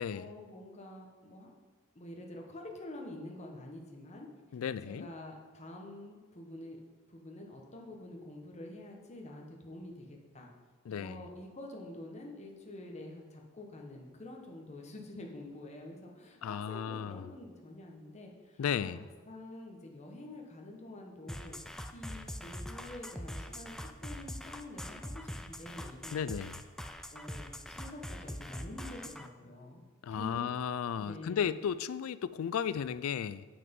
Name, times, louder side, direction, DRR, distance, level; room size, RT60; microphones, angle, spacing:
voice 1, 0.1-1.5 1.9-4.3 4.8-6.8 7.1-10.5 10.9-21.6 21.9-26.2 27.1-29.8 30.1-30.6 30.9-31.5, left 1 dB, 35° left, 1 dB, 1.2 m, -47 dB
voice 2, 4.5-5.1 10.9-11.2 16.4-17.2 18.6-19.0 26.1-26.6 30.0-33.5, left 8 dB, 80° left, 15 dB, 0.3 m, -34 dB
sound 1, 21.3-29.3, equal, ahead, 0.3 m, -43 dB
8.2 x 6.0 x 5.4 m, 1.4 s
head